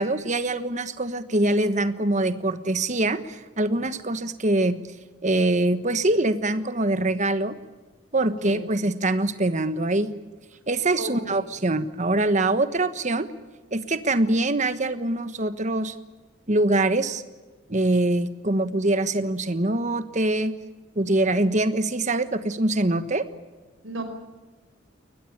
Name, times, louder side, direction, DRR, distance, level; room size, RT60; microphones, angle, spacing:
voice 1, 0.0-4.8 5.2-7.6 8.1-10.1 10.7-13.3 13.7-15.9 16.5-17.2 17.7-20.5 20.9-23.2, right 2 dB, 40° right, 11 dB, 1.3 m, -24 dB
voice 2, 8.2-8.7 11.0-11.4 23.8-24.0, right 1 dB, 80° right, 6 dB, 5.1 m, -34 dB
22.5 x 20.0 x 8.8 m, 1.3 s
head